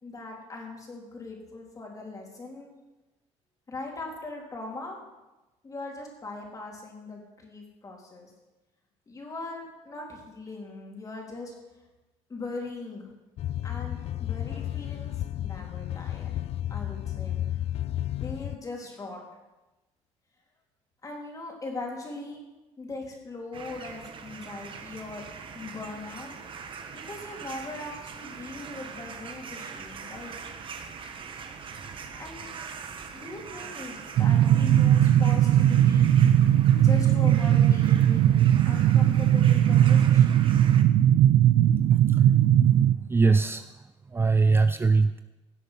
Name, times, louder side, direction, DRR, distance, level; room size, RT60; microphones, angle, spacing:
voice 1, 0.0-2.7 3.7-5.0 5.6-8.3 9.1-11.5 12.3-13.1 13.6-16.4 16.7-17.4 17.8-17.9 18.2-19.2 21.0-22.4 22.8-25.2 25.5-26.3 26.9-30.3 32.1-32.6 33.1-36.1 36.8-38.3 38.7-40.5, left 2 dB, 30° left, 0 dB, 3.6 m, -40 dB
sound 1, 13.4-18.6, left 12 dB, 55° left, 0.4 m, -32 dB
sound 2, 23.5-40.8, right 6 dB, 45° right, 1.4 m, -42 dB
sound 3, 34.2-42.9, right 11 dB, 65° right, 0.6 m, -19 dB
voice 2, 43.1-43.6 44.1-45.2, right 4 dB, 20° right, 11 dB, 0.4 m, -21 dB
16.5 x 7.8 x 5.8 m, 1.1 s
cardioid pair, 110°, 12 cm